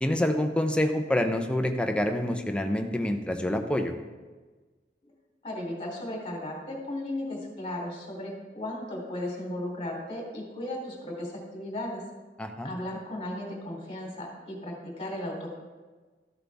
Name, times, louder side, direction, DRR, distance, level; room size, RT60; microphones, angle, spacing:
voice 1, 0.0-4.0 12.4-12.7, left 1 dB, 5° left, 5 dB, 0.7 m, -27 dB
voice 2, 5.4-12.0 12.6-15.5, left 1 dB, 30° left, -1 dB, 3.1 m, -35 dB
13.5 x 8.1 x 3.5 m, 1.3 s
head